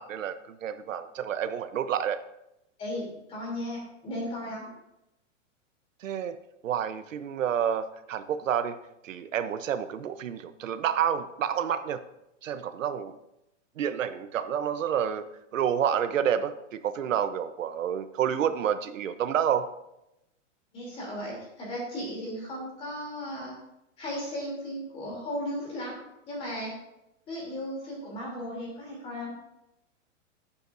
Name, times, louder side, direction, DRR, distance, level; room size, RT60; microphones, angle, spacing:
voice 1, 0.0-2.2 6.0-6.4 6.6-8.8 9.0-12.0 12.4-13.2 13.8-15.3 15.5-19.7, right 9 dB, 85° right, 11 dB, 0.9 m, -29 dB
voice 2, 2.8-4.7 20.7-23.5 24.0-26.0 26.3-26.7 27.3-29.3, equal, 15° left, -4 dB, 3.1 m, -35 dB
16.0 x 8.8 x 2.6 m, 0.87 s
hypercardioid pair, 170°, 38 cm